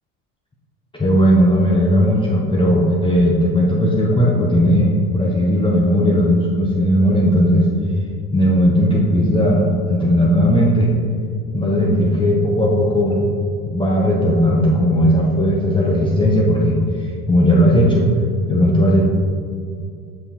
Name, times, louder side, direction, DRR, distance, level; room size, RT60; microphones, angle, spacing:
voice 1, 1.0-7.7 8.3-10.9 11.5-13.3 13.7-18.1 18.5-19.0, equal, 10° left, -4 dB, 0.8 m, -16 dB
7.8 x 5.3 x 2.9 m, 2.3 s
figure-of-eight pair, 75°, 45 cm